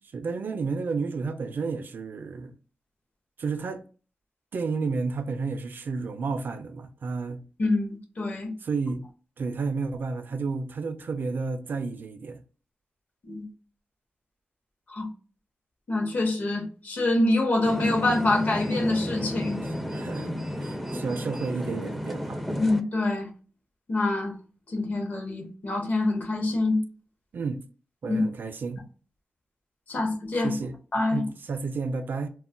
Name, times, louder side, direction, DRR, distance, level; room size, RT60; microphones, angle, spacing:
voice 1, 0.1-2.5 3.4-3.8 4.5-7.4 8.6-9.0 9.4-12.4 19.6-22.4 27.3-27.6 28.0-28.8 30.4-30.8 31.1-32.3, right 4 dB, 65° right, 0.4 m, -31 dB
voice 2, 7.6-8.5 13.3-13.5 14.9-15.1 15.9-19.6 22.6-23.3 23.9-24.4 24.7-26.8 28.1-28.2 29.9-30.6 30.9-31.2, left 2 dB, 50° left, 0.8 m, -25 dB
sound 1, 17.7-22.8, equal, ahead, 0.4 m, -33 dB
2.2 x 2.1 x 3.7 m
cardioid pair, 75°, 4 cm